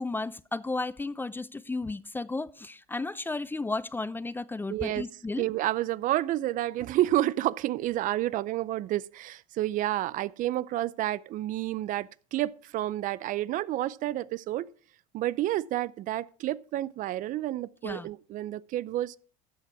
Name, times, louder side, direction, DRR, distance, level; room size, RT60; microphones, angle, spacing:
voice 1, 0.0-5.5 17.8-18.1, left 3 dB, 10° left, 0.5 m, -33 dB
voice 2, 4.7-5.1 5.4-14.7 15.1-19.2, right 14 dB, 45° right, 0.5 m, -30 dB
13.0 x 8.1 x 4.6 m
hypercardioid pair, 85°, 18 cm